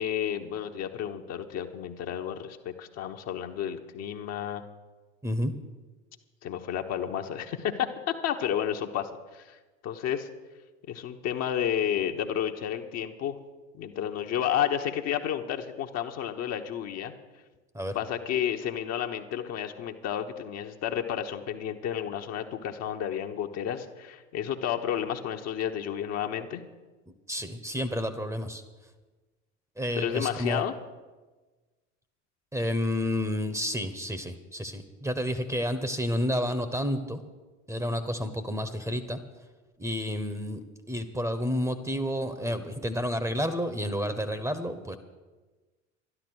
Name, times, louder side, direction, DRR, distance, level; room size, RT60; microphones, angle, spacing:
voice 1, 0.0-4.6 6.4-9.6 9.8-10.3 10.9-13.4 13.7-17.1 17.9-26.6 29.9-30.7, left 9 dB, 45° left, 4 dB, 1.1 m, -31 dB
voice 2, 27.3-28.6 29.8-30.6 32.5-37.2 37.7-39.2 39.8-40.6 40.9-45.0, equal, 10° right, 11 dB, 1.0 m, -30 dB
12.0 x 11.0 x 6.3 m, 1.3 s
figure-of-eight pair, 70°, 36 cm